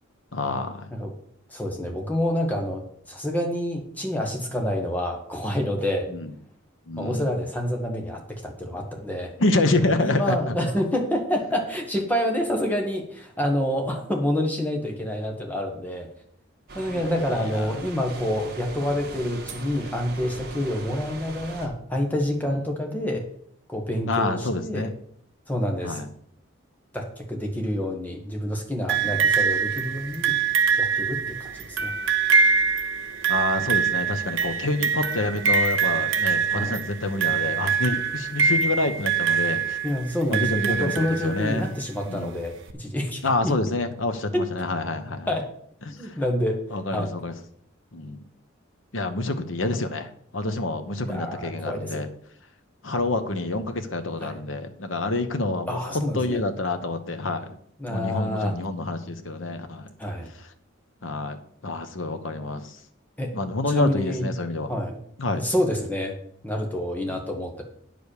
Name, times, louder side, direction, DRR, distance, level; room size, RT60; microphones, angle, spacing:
voice 1, 0.3-0.9 6.1-6.3 6.9-7.3 9.4-10.5 16.9-17.7 24.1-24.9 25.8-26.1 29.0-29.3 33.3-39.8 40.3-41.7 42.0-42.3 43.2-45.4 45.9-46.2 46.7-47.3 47.9-48.2 48.9-52.1 52.8-57.5 57.9-59.9 61.0-62.8 63.3-64.7 65.2-65.4 67.0-67.2, left 2 dB, 75° left, 8 dB, 1.0 m, -27 dB
voice 2, 1.5-6.1 7.0-9.3 10.0-16.1 16.7-23.2 23.7-24.9 25.5-26.0 26.9-30.4 30.8-31.9 36.5-36.7 39.8-42.5 42.8-43.6 44.3-44.4 45.3-45.5 46.0-46.6 46.9-47.1 51.0-52.0 54.2-54.4 55.7-56.4 57.8-58.5 60.0-60.3 63.2-63.3 63.7-64.3 64.7-65.0 65.3-66.2 66.4-67.6, left 1 dB, 10° left, 1 dB, 1.5 m, -28 dB
sound 1, 16.7-21.7, right 3 dB, 50° right, 1.8 m, -40 dB
sound 2, 28.9-41.7 42.7-42.8, right 6 dB, 70° right, 0.9 m, -24 dB
9.4 x 5.2 x 6.7 m, 0.65 s
head